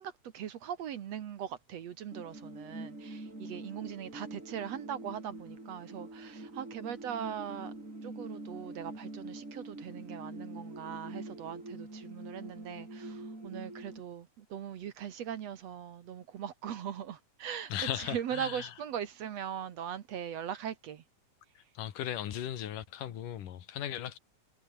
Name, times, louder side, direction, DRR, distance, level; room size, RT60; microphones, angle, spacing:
voice 1, 0.0-7.7 8.0-21.0, right 9 dB, 60° right, 2.3 m, -40 dB
sound 1, 2.1-14.0, right 2 dB, 20° right, 7.0 m, -45 dB
voice 2, 17.7-18.7 21.8-24.2, left 11 dB, 85° left, 3.4 m, -37 dB
omnidirectional pair, 3.7 m